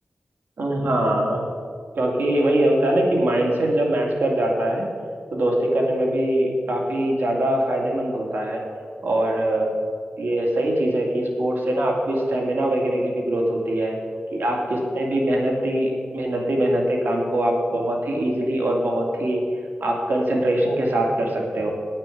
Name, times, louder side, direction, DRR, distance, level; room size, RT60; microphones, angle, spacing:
voice 1, 0.6-1.5 1.9-4.9 5.3-8.6 9.0-9.7 10.2-14.0 14.3-19.4 19.8-21.7, right 1 dB, 70° right, 0 dB, 2.4 m, -22 dB
9.2 x 8.9 x 7.1 m, 2.2 s
wide cardioid pair, 95°, 4 cm